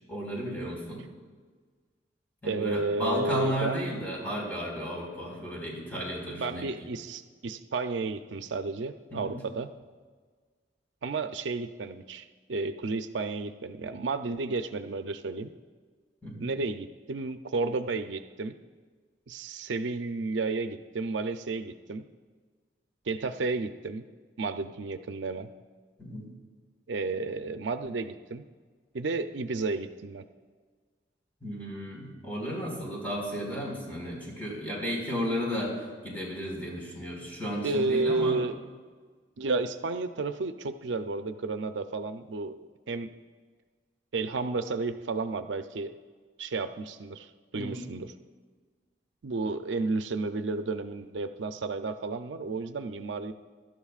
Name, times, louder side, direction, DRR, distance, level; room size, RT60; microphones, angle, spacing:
voice 1, 0.1-1.0 2.4-6.9 9.1-9.4 16.2-16.5 26.0-26.3 31.4-38.4 47.5-47.9, equal, 10° left, -4 dB, 4.6 m, -34 dB
voice 2, 2.4-3.9 6.3-9.7 11.0-15.5 16.4-18.6 19.3-22.0 23.1-24.0 24.4-25.5 26.9-28.5 28.9-30.3 37.6-38.6 39.4-43.1 44.1-45.9 46.4-48.1 49.2-53.3, right 3 dB, 85° right, 8 dB, 0.6 m, -32 dB
23.5 x 12.5 x 2.4 m, 1.5 s
head